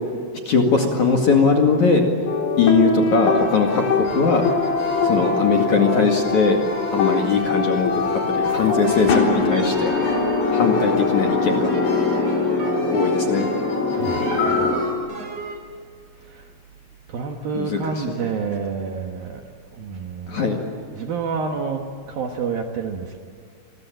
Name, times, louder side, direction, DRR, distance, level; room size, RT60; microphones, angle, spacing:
voice 1, 0.5-2.0 2.6-4.5 5.0-6.6 6.9-9.9 10.5-11.7 12.9-13.5 17.5-17.8 20.3-20.6, left 4 dB, 50° left, 2 dB, 2.7 m, -20 dB
sound 1, 2.3-14.8, left 4 dB, 65° left, 5.7 m, -23 dB
sound 2, 3.3-14.9, left 1 dB, 85° left, 9.3 m, -31 dB
sound 3, 8.4-15.6, right 4 dB, 35° right, 3.6 m, -37 dB
voice 2, 14.0-14.8 16.2-16.5 17.1-19.4 19.7-20.4 20.9-23.2, right 5 dB, 65° right, 3 dB, 2.6 m, -29 dB
27.5 x 22.0 x 9.1 m, 2.2 s
omnidirectional pair, 5.7 m